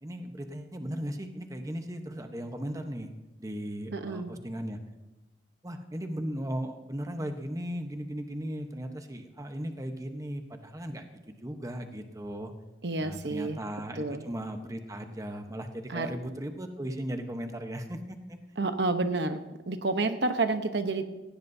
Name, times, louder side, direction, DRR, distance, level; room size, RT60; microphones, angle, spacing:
voice 1, 0.0-3.1 3.4-4.8 5.6-12.5 13.0-18.4, equal, 20° right, 6 dB, 1.0 m, -37 dB
voice 2, 3.9-4.3 12.8-13.6 14.0-14.3 15.9-16.1 18.6-19.4 19.7-21.1, right 3 dB, 75° right, 8 dB, 0.9 m, -29 dB
18.5 x 16.5 x 2.7 m, 1.0 s
head